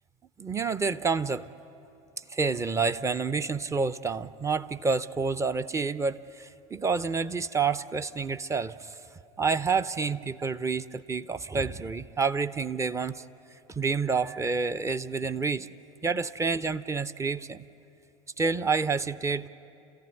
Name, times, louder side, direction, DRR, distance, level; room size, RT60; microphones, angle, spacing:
voice 1, 0.4-1.5 2.3-8.9 9.4-13.2 13.8-15.7 16.0-17.6 18.4-19.5, right 4 dB, 15° right, 13 dB, 0.6 m, -28 dB
28.5 x 14.5 x 9.6 m, 2.8 s
figure-of-eight pair, 70°, 17 cm